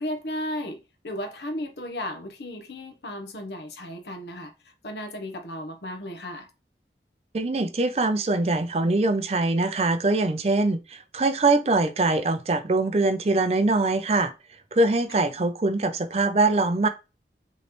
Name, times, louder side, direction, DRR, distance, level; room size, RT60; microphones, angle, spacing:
voice 1, 0.0-6.5, left 1 dB, 75° left, 0.9 m, -35 dB
voice 2, 7.3-14.3 14.7-16.9, right 2 dB, 35° right, 0.5 m, -23 dB
5.5 x 3.2 x 3.0 m
head